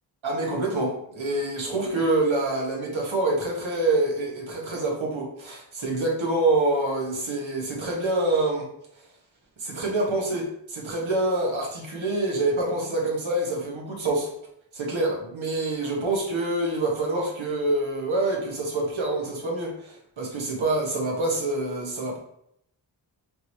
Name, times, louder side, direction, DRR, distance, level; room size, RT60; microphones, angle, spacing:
voice 1, 0.2-8.7 9.6-14.3 14.7-22.2, right 2 dB, 90° right, -1 dB, 1.3 m, -26 dB
5.2 x 2.7 x 3.0 m, 0.72 s
wide cardioid pair, 50°, 46 cm